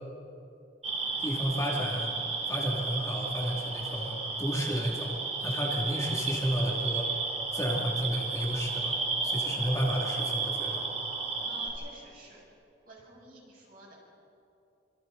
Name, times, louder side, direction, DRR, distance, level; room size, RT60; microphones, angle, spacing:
sound 1, 0.8-11.7, right 4 dB, 40° right, 3.1 m, -33 dB
voice 1, 1.2-2.1 2.5-5.1 5.4-7.1 7.5-9.0 9.2-10.9, equal, 20° left, -2 dB, 2.7 m, -32 dB
voice 2, 11.5-12.4 12.8-14.0, right 1 dB, 55° right, -3 dB, 7.1 m, -51 dB
26.5 x 26.0 x 4.1 m, 2.7 s
head